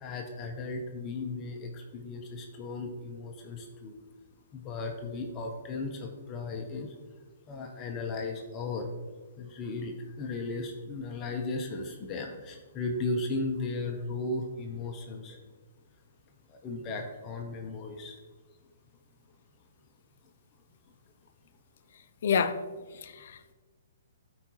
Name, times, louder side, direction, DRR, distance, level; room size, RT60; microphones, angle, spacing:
voice 1, 0.0-3.9 4.5-6.9 7.5-8.9 9.4-15.4 16.6-18.2, left 3 dB, 25° left, 2 dB, 0.9 m, -36 dB
voice 2, 22.2-22.6 22.9-23.5, left 6 dB, 60° left, 10 dB, 0.5 m, -29 dB
12.5 x 4.8 x 3.1 m, 1.3 s
hypercardioid pair, 140°, 0 cm